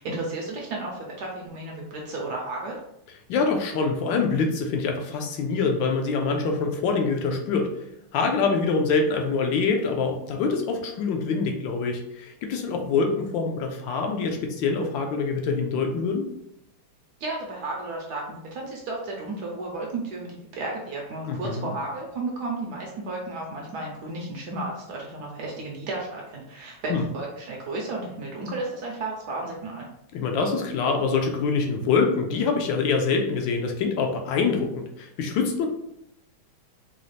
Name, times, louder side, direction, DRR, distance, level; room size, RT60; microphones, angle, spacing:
voice 1, 0.0-2.8 17.2-29.9, right 2 dB, 70° right, -1 dB, 1.0 m, -33 dB
voice 2, 3.3-7.7 8.1-16.3 21.3-21.7 26.9-27.0 30.1-35.7, left 4 dB, 75° left, 3 dB, 1.2 m, -25 dB
4.0 x 2.4 x 3.1 m, 0.79 s
omnidirectional pair, 2.2 m